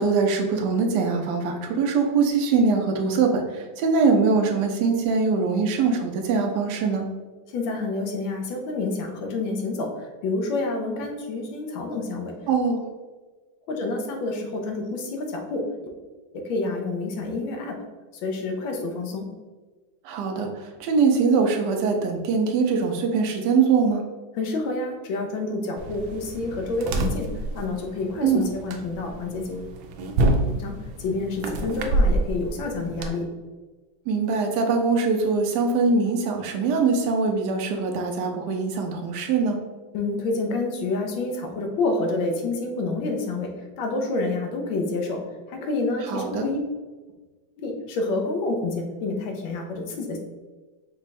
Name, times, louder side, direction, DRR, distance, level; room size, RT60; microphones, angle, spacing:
voice 1, 0.0-7.1 12.5-12.8 20.0-20.5 20.8-24.0 28.2-28.5 34.1-39.6 46.1-46.5, right 4 dB, 70° right, 3 dB, 1.2 m, -22 dB
voice 2, 7.5-9.9 10.2-12.3 13.7-15.7 16.4-17.8 18.2-19.3 24.4-27.3 27.5-29.7 30.5-30.7 31.0-33.3 39.9-43.5 43.8-45.2 45.5-46.6 47.6-50.2, left 3 dB, 80° left, 2 dB, 1.5 m, -28 dB
sound 1, 25.8-33.1, right 1 dB, 90° right, 1.4 m, -27 dB
5.3 x 2.3 x 4.1 m, 1.3 s
omnidirectional pair, 2.1 m